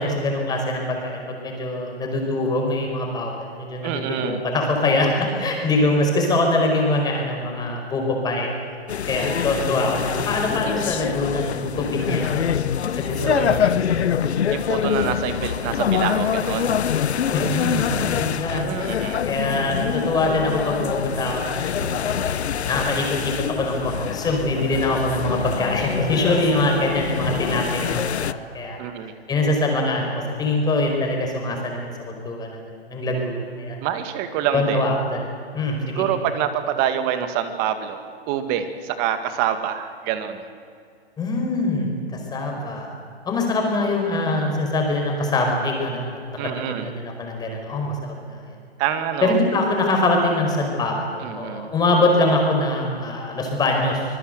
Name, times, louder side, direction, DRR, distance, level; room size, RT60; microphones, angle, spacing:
voice 1, 0.0-8.7 9.1-12.4 12.9-13.7 14.1-14.2 17.3-18.7 19.2-28.8 29.3-33.8 34.5-35.3 35.5-36.1 41.2-42.9 43.2-48.6 49.2-54.0, left 2 dB, 10° left, 1 dB, 5.0 m, -24 dB
voice 2, 3.8-4.4 9.1-9.6 13.3-13.7 14.5-16.8 18.5-19.2 28.8-29.1 33.8-34.9 36.0-40.4 46.4-46.9 48.8-49.4 51.2-51.7, right 9 dB, 30° right, 9 dB, 2.1 m, -26 dB
sound 1, 8.9-28.3, left 8 dB, 80° left, 1.0 m, -25 dB
26.0 x 21.5 x 8.1 m, 2.3 s
hypercardioid pair, 150°, 32 cm